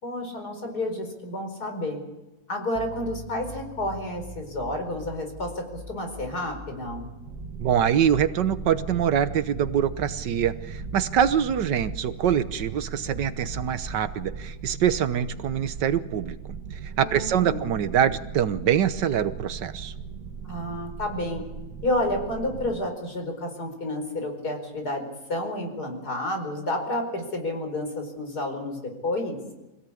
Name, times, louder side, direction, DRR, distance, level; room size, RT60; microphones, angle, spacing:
voice 1, 0.0-2.0 2.5-7.1 17.0-17.7 20.4-21.4 21.8-25.0 25.3-29.4, left 1 dB, 60° left, 5 dB, 5.1 m, -30 dB
sound 1, 2.7-15.9, equal, 15° right, 3.1 m, -43 dB
sound 2, 7.2-22.8, right 6 dB, 60° right, 1.7 m, -39 dB
voice 2, 7.6-16.3 17.0-19.9, right 9 dB, 80° right, 11 dB, 1.6 m, -24 dB
25.5 x 17.0 x 8.6 m, 1.0 s
omnidirectional pair, 1.9 m